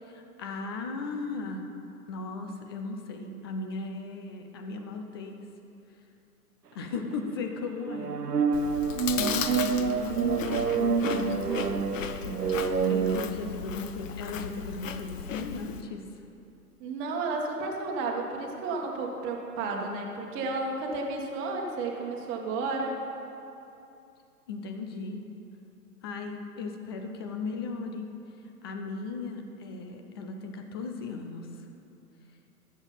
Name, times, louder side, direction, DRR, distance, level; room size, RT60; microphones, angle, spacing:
voice 1, 0.0-1.6 2.1-5.4 6.7-8.2 9.2-11.6 12.2-16.1 24.5-25.2 26.0-28.1 28.6-31.5, left 4 dB, 15° left, 5 dB, 0.4 m, -37 dB
sound 1, 7.9-13.3, right 5 dB, 80° right, 0.8 m, -27 dB
Chewing mastication, 8.5-15.8, left 7 dB, 55° left, 0.8 m, -36 dB
voice 2, 16.8-23.0, right 3 dB, 25° right, 0 dB, 1.6 m, -32 dB
13.5 x 7.3 x 5.7 m, 2.7 s
figure-of-eight pair, 115°, 46 cm